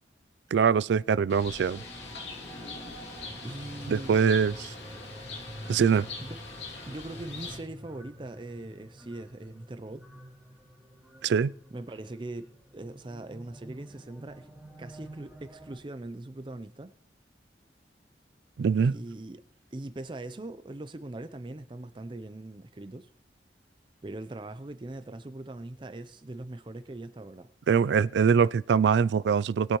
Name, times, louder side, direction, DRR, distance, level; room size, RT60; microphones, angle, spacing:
voice 1, 0.5-1.8 3.9-4.7 5.7-6.1 11.2-11.5 18.6-18.9 27.7-29.8, right 6 dB, 85° right, 0.3 m, -23 dB
Bird, 1.3-7.6, left 3 dB, 85° left, 2.6 m, -42 dB
sound 1, 1.7-15.8, right 1 dB, 5° right, 1.8 m, -48 dB
voice 2, 3.4-4.2 6.2-6.4 6.9-10.0 11.7-14.5 14.8-16.9 18.8-19.4 19.7-23.1 24.0-27.5, right 2 dB, 25° right, 0.5 m, -41 dB
20.5 x 8.3 x 3.0 m
head